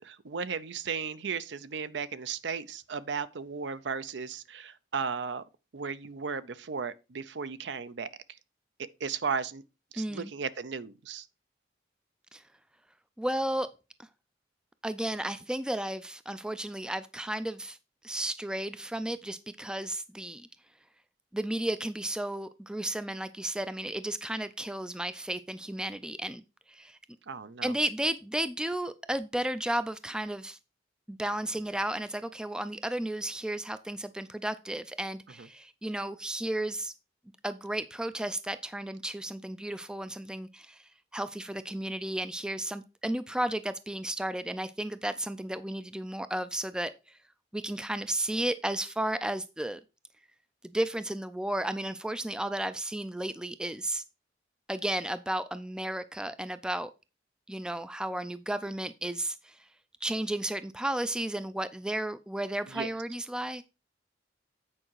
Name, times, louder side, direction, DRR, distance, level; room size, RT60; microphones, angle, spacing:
voice 1, 0.0-5.4 5.7-8.1 8.8-9.6 9.9-11.3 27.3-27.7 35.4-35.5 62.7-62.9, right 5 dB, 70° right, 0.6 m, -35 dB
voice 2, 10.0-10.3 12.3-12.4 13.2-13.7 14.8-17.8 18.0-20.5 21.3-26.4 26.7-27.0 27.6-30.6 31.1-36.9 37.4-40.8 41.1-47.2 47.5-49.8 50.6-54.0 54.7-56.9 57.5-59.6 60.0-63.6, right 1 dB, 5° right, 0.3 m, -33 dB
8.8 x 4.9 x 4.6 m
head